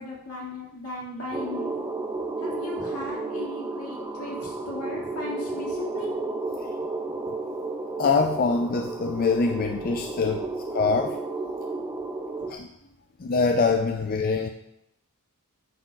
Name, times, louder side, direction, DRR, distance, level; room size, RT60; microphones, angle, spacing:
voice 1, 0.0-1.9 2.4-6.1 11.5-11.6 12.0-12.1 12.8-12.9, left 2 dB, 80° left, -3 dB, 2.0 m, -37 dB
sound 1, 1.3-12.5, right 3 dB, 15° right, 0.4 m, -33 dB
voice 2, 8.0-11.2 12.5-12.7 13.2-14.5, left 4 dB, 40° left, 3 dB, 0.4 m, -24 dB
9.6 x 6.5 x 2.4 m, 0.81 s
head